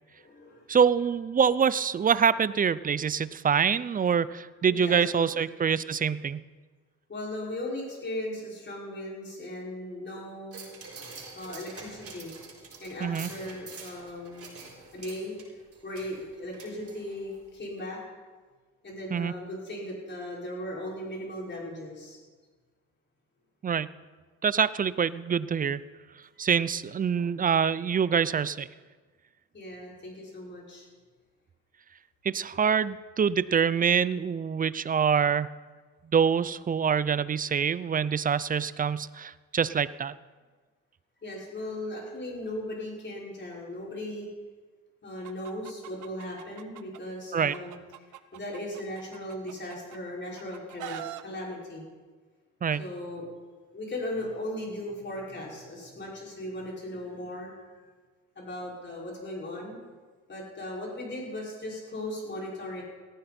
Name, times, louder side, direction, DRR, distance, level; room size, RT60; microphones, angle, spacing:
voice 1, 0.1-0.7 4.7-5.3 7.1-10.6 11.3-12.3 12.8-14.5 14.9-15.3 15.8-18.0 18.8-22.2 29.5-30.9 41.2-44.3 45.0-47.7 48.3-51.8 52.8-53.3 53.7-57.7 58.4-59.8 60.3-62.8, left 1 dB, 35° left, -3 dB, 5.9 m, -37 dB
voice 2, 0.7-6.4 13.0-13.3 19.1-19.3 23.6-23.9 24.4-25.8 26.4-28.7 32.2-35.5 36.1-40.1 47.3-47.5 52.6-52.9, right 7 dB, 30° right, 18 dB, 0.5 m, -25 dB
sound 1, 10.5-17.4 17.8-17.9, right 4 dB, 50° right, 4.1 m, -46 dB
Chicken rooster, 45.2-47.0 47.4-50.0 50.4-51.2, right 12 dB, 80° right, 0.9 m, -42 dB
18.0 x 14.0 x 4.4 m, 1.4 s
cardioid pair, 90°, 30 cm